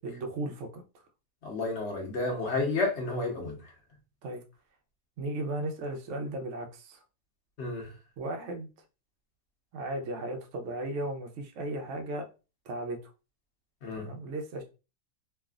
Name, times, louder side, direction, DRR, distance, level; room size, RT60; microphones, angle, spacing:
voice 1, 0.0-0.8 4.2-4.4 5.2-7.0 8.2-8.7 9.7-12.3 12.7-13.0 13.9-14.6, right 1 dB, 65° right, 0.8 m, -35 dB
voice 2, 1.4-3.6 7.6-7.9 13.8-14.1, left 3 dB, 50° left, 1.0 m, -31 dB
3.3 x 2.3 x 2.4 m
omnidirectional pair, 1.8 m